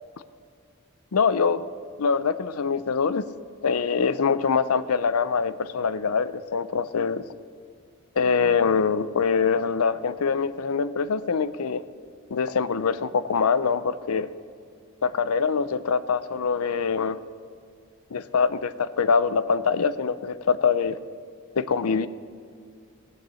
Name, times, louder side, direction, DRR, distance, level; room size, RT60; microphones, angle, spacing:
voice 1, 1.1-1.6 2.0-3.2 3.6-7.2 8.2-11.8 12.3-14.3 15.0-17.2 18.1-21.0 21.6-22.1, left 5 dB, 85° left, 15 dB, 0.6 m, -24 dB
18.0 x 7.8 x 7.0 m, 2.3 s
head